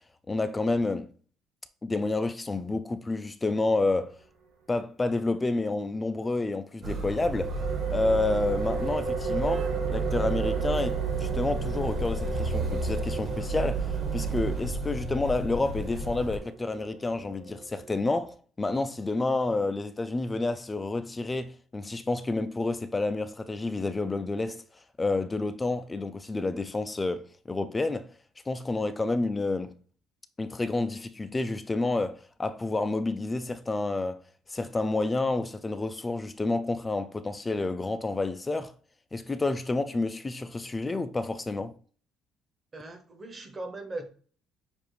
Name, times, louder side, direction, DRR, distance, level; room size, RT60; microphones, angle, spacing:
voice 1, 0.3-1.1 1.8-4.2 4.7-7.5 7.9-24.6 25.0-28.1 28.5-29.7 30.4-34.2 34.5-38.7 39.1-41.7, left 2 dB, 15° left, 0.3 m, -29 dB
Motor vehicle (road), 6.8-16.4, right 4 dB, 40° right, 1.2 m, -32 dB
sound 1, 6.9-18.3, right 4 dB, 65° right, 1.7 m, -36 dB
voice 2, 42.7-44.1, right 2 dB, 25° right, 0.9 m, -39 dB
6.8 x 2.5 x 3.1 m
cardioid pair, 135°, 0 cm